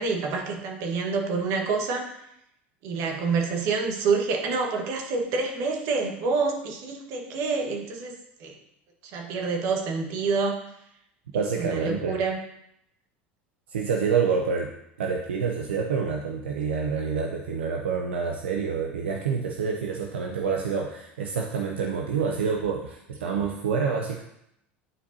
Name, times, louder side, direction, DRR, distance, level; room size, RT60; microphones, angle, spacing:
voice 1, 0.0-2.1 2.8-8.6 9.0-10.6 11.6-12.4, right 4 dB, 60° right, 2 dB, 1.5 m, -27 dB
voice 2, 11.3-12.2 13.7-14.7 15.0-24.2, right 6 dB, 85° right, 1 dB, 0.6 m, -27 dB
11.0 x 4.6 x 2.8 m, 0.79 s
hypercardioid pair, 85°, 6 cm